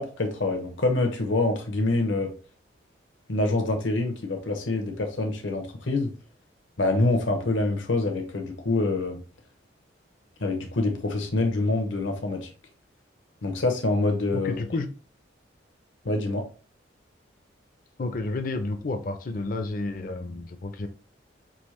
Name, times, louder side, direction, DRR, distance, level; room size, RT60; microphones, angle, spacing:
voice 1, 0.0-2.3 3.3-6.1 6.8-9.2 10.4-12.5 13.4-14.5 16.0-16.4, left 2 dB, 80° left, 3 dB, 1.0 m, -26 dB
voice 2, 14.3-14.9 18.0-20.9, left 2 dB, 45° left, 7 dB, 0.5 m, -31 dB
5.4 x 2.8 x 3.1 m, 0.36 s
head